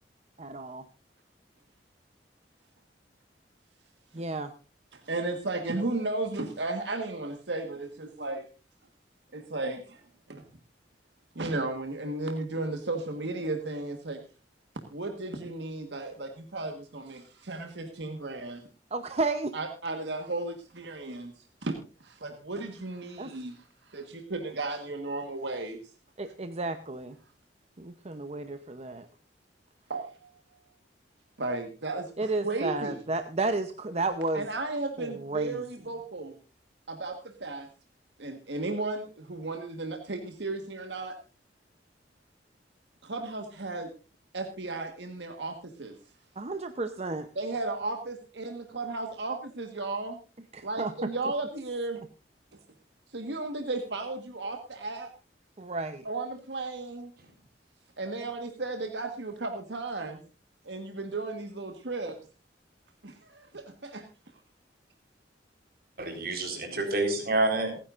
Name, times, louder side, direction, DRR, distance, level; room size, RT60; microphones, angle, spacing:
voice 1, 0.4-0.8 4.1-4.5 18.9-19.5 23.2-23.3 26.2-27.2 27.8-29.1 32.2-34.4 35.0-35.6 46.4-47.3 50.5-51.1 55.6-56.0, right 3 dB, 35° right, 9 dB, 0.8 m, -32 dB
voice 2, 4.9-8.4 9.3-10.0 10.3-10.4 11.3-14.2 14.9-18.7 19.5-25.9 29.9-30.3 31.4-33.0 34.3-36.3 36.9-37.7 38.2-41.2 43.0-43.9 44.3-46.0 47.3-50.2 50.6-52.0 53.1-55.1 56.0-57.1 58.0-60.2 60.6-62.2 63.0-64.1, right 2 dB, 70° right, 4 dB, 1.5 m, -34 dB
voice 3, 66.0-67.8, right 2 dB, 55° right, 4 dB, 4.0 m, -28 dB
28.0 x 9.9 x 2.5 m, 0.33 s
head